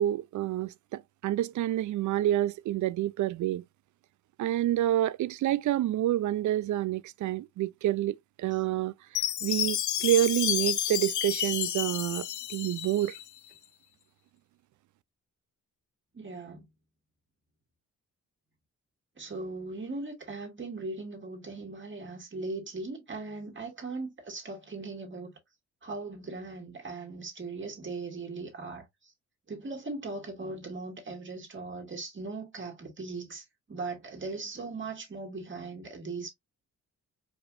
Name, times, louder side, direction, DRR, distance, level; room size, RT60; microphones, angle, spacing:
voice 1, 0.0-3.6 4.4-8.9 9.4-13.2, right 13 dB, 70° right, 0.4 m, -28 dB
Chime, 9.1-13.3, left 12 dB, 70° left, 0.5 m, -31 dB
voice 2, 16.1-16.7 19.2-25.4 25.8-29.1 29.5-36.3, right 3 dB, 40° right, 2.1 m, -39 dB
4.8 x 3.4 x 2.5 m
cardioid pair, 90°, 31 cm